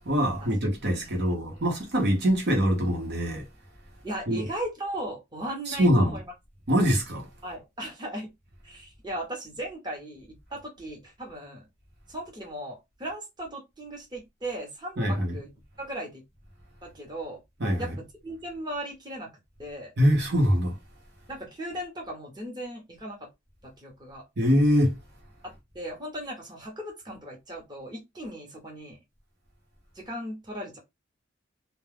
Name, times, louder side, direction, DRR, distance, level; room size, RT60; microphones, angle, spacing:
voice 1, 0.0-3.5 4.3-4.5 5.7-6.2 6.7-7.3 15.0-15.4 17.6-17.9 20.0-20.8 24.4-25.0, equal, 55° right, 0.9 m, -23 dB
voice 2, 1.0-1.6 4.0-6.3 7.4-8.3 8.6-11.6 12.1-15.5 15.8-16.2 16.8-17.4 17.8-17.9 18.2-19.3 19.6-19.9 21.3-23.3 23.6-24.2 25.4-29.0 29.9-30.8, right 1 dB, 20° right, 0.8 m, -37 dB
2.3 x 2.2 x 3.3 m
head